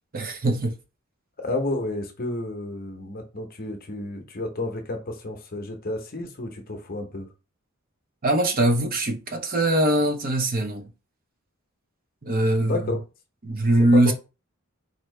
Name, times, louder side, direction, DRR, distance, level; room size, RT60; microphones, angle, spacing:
voice 1, 0.1-0.7 8.2-10.9 12.2-12.9 13.4-14.1, right 1 dB, 45° right, 0.7 m, -22 dB
voice 2, 1.4-7.3 12.6-13.0 13.9-14.1, left 2 dB, 45° left, 0.8 m, -31 dB
4.3 x 2.7 x 3.2 m
head